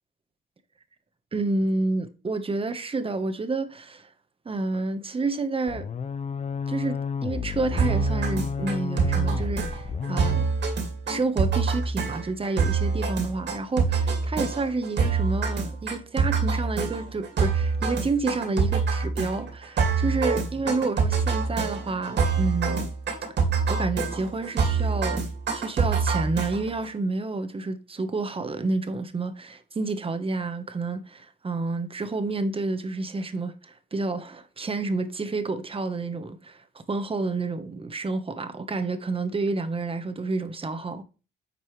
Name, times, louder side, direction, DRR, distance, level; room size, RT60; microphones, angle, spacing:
voice 1, 1.3-4.1 4.4-5.9 6.7-10.4 11.1-22.9 23.7-36.6 36.9-41.0, right 3 dB, 30° right, 1.2 m, -29 dB
sound 1, 5.7-10.5, left 6 dB, 35° left, 0.5 m, -31 dB
sound 2, 7.8-26.9, right 5 dB, 60° right, 2.3 m, -26 dB
9.3 x 5.3 x 3.3 m
cardioid pair, 90°, 20 cm